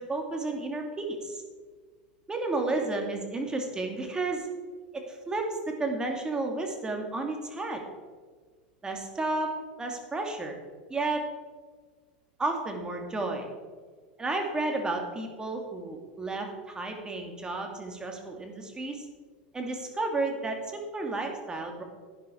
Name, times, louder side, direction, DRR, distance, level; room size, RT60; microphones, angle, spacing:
voice 1, 0.0-1.4 2.3-4.5 5.1-7.8 8.8-9.5 9.8-10.6 10.9-11.2 12.4-13.5 14.2-19.1 19.5-21.8, right 2 dB, 15° right, 3 dB, 2.2 m, -32 dB
11.5 x 9.9 x 4.4 m, 1.5 s
hypercardioid pair, 105°, 5 cm